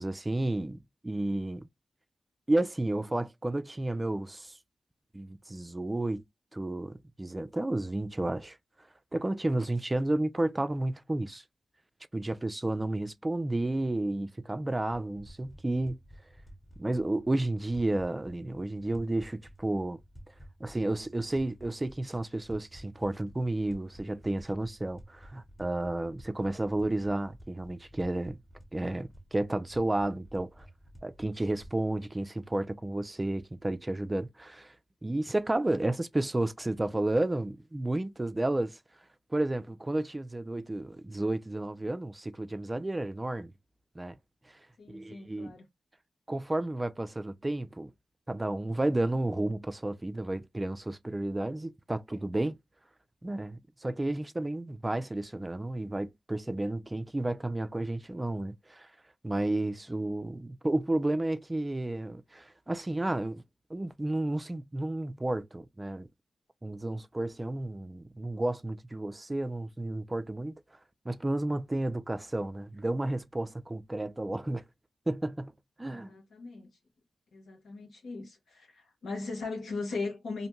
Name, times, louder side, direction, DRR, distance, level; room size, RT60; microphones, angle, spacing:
voice 1, 0.0-1.7 2.5-4.5 5.1-6.2 6.5-8.6 9.1-11.4 12.1-16.0 16.8-20.0 20.6-28.4 28.7-30.7 31.0-34.7 35.0-38.8 39.3-43.5 44.0-44.2 44.9-45.6 46.3-47.9 48.3-52.6 53.2-58.9 59.2-63.4 63.7-66.1 66.6-70.5 71.1-74.6 75.1-75.5 75.8-76.2, right 2 dB, 25° right, 0.3 m, -32 dB
sound 1, 14.9-31.7, equal, 25° left, 1.1 m, -53 dB
voice 2, 44.8-45.7 75.9-76.7 77.3-80.5, left 3 dB, 90° left, 1.0 m, -38 dB
2.6 x 2.2 x 3.0 m
cardioid pair, 50°, 0 cm